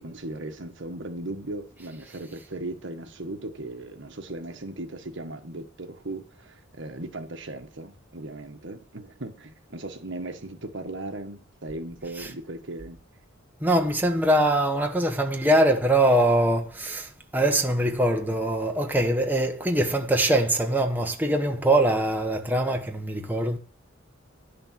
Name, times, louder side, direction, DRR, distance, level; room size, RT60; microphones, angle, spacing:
voice 1, 0.0-13.0, right 2 dB, 60° right, 1.5 m, -37 dB
voice 2, 13.6-23.6, right 1 dB, 10° right, 1.2 m, -23 dB
11.0 x 6.8 x 7.5 m
head